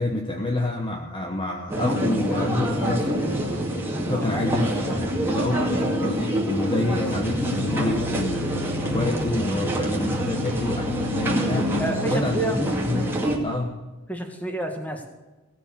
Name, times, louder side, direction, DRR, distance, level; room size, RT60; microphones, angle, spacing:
voice 1, 0.0-3.3 4.1-5.6 6.0-11.7 12.0-13.1 13.4-13.7, left 1 dB, 20° left, 2 dB, 1.1 m, -28 dB
sound 1, 1.7-13.4, equal, 10° right, 2.2 m, -26 dB
voice 2, 4.3-4.6 5.5-5.8 11.8-12.6 14.1-15.1, right 1 dB, 5° left, 4 dB, 1.9 m, -29 dB
sound 2, 6.8-12.2, left 4 dB, 35° right, 2.3 m, -35 dB
18.5 x 7.8 x 6.8 m, 1.2 s
head